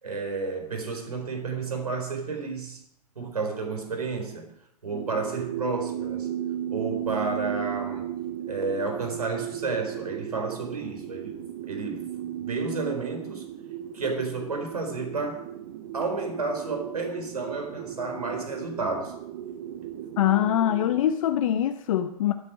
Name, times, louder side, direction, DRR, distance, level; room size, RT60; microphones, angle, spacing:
voice 1, 0.0-2.8 3.2-4.5 4.8-6.3 6.7-8.1 8.5-11.4 11.6-13.5 13.9-15.5 15.9-19.2, right 3 dB, 80° right, 4 dB, 4.2 m, -31 dB
sound 1, 4.9-21.0, right 11 dB, 50° right, 0.9 m, -35 dB
voice 2, 20.2-22.3, left 11 dB, 60° left, 8 dB, 0.8 m, -23 dB
13.5 x 11.5 x 5.0 m, 0.78 s
figure-of-eight pair, 100°, 19 cm